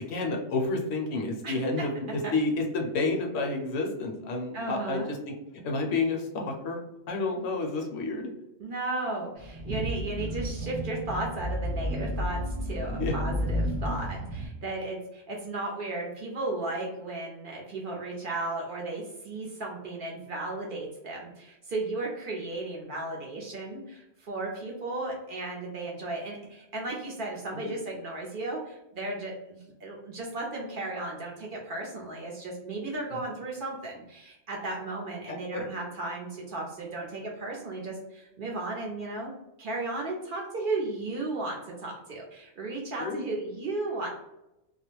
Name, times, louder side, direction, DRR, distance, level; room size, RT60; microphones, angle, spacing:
voice 1, 0.0-6.8 7.1-8.3 13.0-13.1 27.5-27.7 35.3-35.7 43.0-43.2, left 3 dB, 70° left, 2 dB, 0.8 m, -30 dB
voice 2, 4.5-5.0 8.6-39.3 39.6-44.1, right 2 dB, 60° right, -1 dB, 0.6 m, -35 dB
sound 1, 9.4-14.5, equal, 35° right, 0.9 m, -32 dB
2.3 x 2.0 x 2.9 m, 0.89 s
omnidirectional pair, 1.2 m